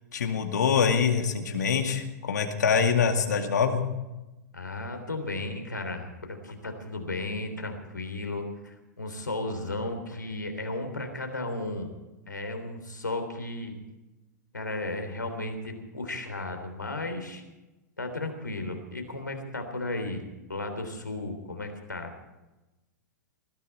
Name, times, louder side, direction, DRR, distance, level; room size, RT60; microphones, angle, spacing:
voice 1, 0.1-3.8, left 6 dB, 65° left, 5 dB, 2.2 m, -24 dB
voice 2, 4.5-11.9 12.3-13.8 14.5-17.4 18.0-20.2 20.5-22.1, left 2 dB, 80° left, 5 dB, 3.4 m, -34 dB
20.5 x 15.0 x 4.4 m, 1.0 s
figure-of-eight pair, 100°, 10 cm